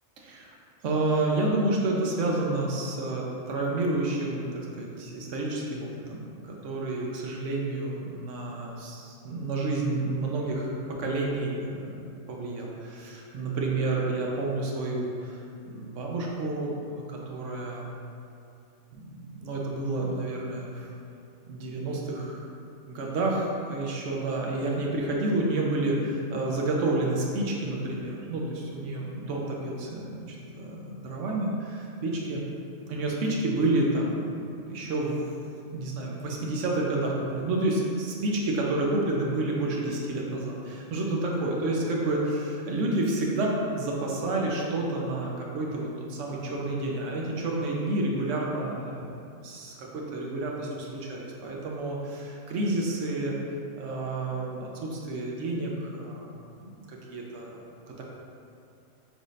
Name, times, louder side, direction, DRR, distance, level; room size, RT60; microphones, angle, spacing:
voice 1, 0.2-0.5 0.8-17.9 18.9-20.9 21.5-22.4 22.9-32.4 32.9-35.2 35.7-49.1 49.4-53.3 53.8-56.3 56.6-58.0, right 2 dB, 75° right, -2 dB, 1.0 m, -30 dB
6.4 x 2.6 x 3.1 m, 2.5 s
omnidirectional pair, 1.3 m